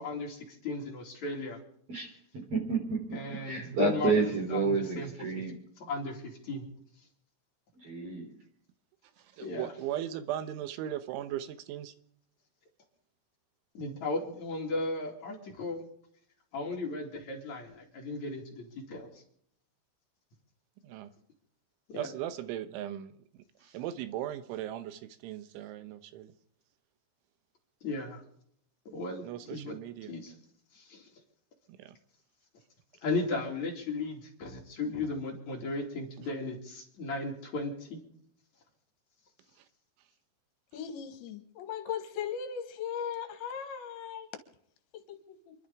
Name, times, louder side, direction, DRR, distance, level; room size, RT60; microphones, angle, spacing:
voice 1, 0.0-1.6 3.1-4.1 4.5-5.1 5.8-6.6 9.4-9.7 13.7-15.8 16.5-19.2 21.9-22.1 27.8-28.2 28.8-29.8 30.1-30.3 30.7-31.1 33.0-38.0, left 2 dB, 45° left, -1 dB, 3.4 m, -36 dB
voice 2, 2.5-3.0 3.3-5.6 7.8-8.4, right 3 dB, 35° right, 2 dB, 3.9 m, -30 dB
voice 3, 9.2-11.9 20.8-21.1 21.9-23.2 23.6-26.3 29.2-30.1 31.7-32.0 39.6-39.7, right 12 dB, 90° right, 11 dB, 3.4 m, -38 dB
voice 4, 40.7-44.3 44.9-45.5, left 8 dB, 80° left, 7 dB, 3.7 m, -38 dB
28.5 x 11.5 x 3.5 m, 0.66 s
omnidirectional pair, 5.3 m